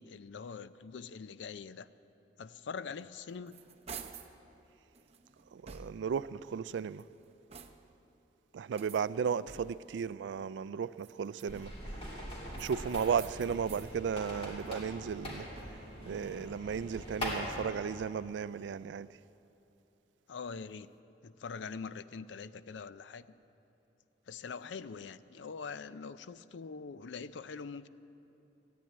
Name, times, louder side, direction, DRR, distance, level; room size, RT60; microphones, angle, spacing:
voice 1, 0.0-1.9 2.4-3.6 20.3-20.9 21.2-23.3 24.3-27.9, left 5 dB, 80° left, 0.4 m, -43 dB
sound 1, 3.0-4.4 4.9-6.2 6.8-8.0 8.7-10.0 10.9-11.9 12.5-13.9 14.4-16.0, right 6 dB, 35° right, 0.7 m, -51 dB
voice 2, 5.5-7.0 8.5-11.7 12.5-15.5 16.1-19.1, right 7 dB, 75° right, 0.3 m, -35 dB
sound 2, 11.5-17.6, equal, 30° left, 2.8 m, -42 dB
14.0 x 9.6 x 9.0 m
head